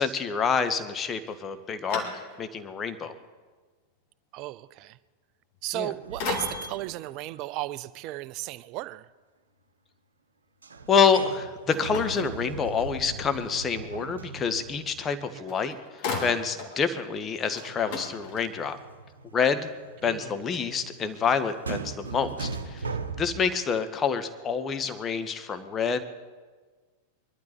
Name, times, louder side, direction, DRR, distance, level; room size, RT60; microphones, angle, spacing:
voice 1, 0.0-2.1 2.4-3.1 5.7-5.9 10.9-15.8 16.2-18.8 19.3-19.7 20.0-22.9 23.2-26.0, left 6 dB, 25° left, 9 dB, 1.3 m, -27 dB
sound 1, 1.2-2.7 3.2-3.3 5.5-5.9 6.2-6.9 11.7-13.0 15.1-15.2 15.5-16.8 17.1-17.2 17.5-18.8, left 4 dB, 45° left, 3.0 m, -36 dB
voice 2, 4.3-5.0 5.6-9.1 15.3-15.5 20.0-20.4, right 16 dB, 40° right, 17 dB, 0.5 m, -35 dB
sound 2, 6.0-7.5 10.6-15.3 17.6-23.5, right 4 dB, 75° right, 1.0 m, -39 dB
23.0 x 12.0 x 4.5 m, 1.4 s
figure-of-eight pair, 90°, 0 cm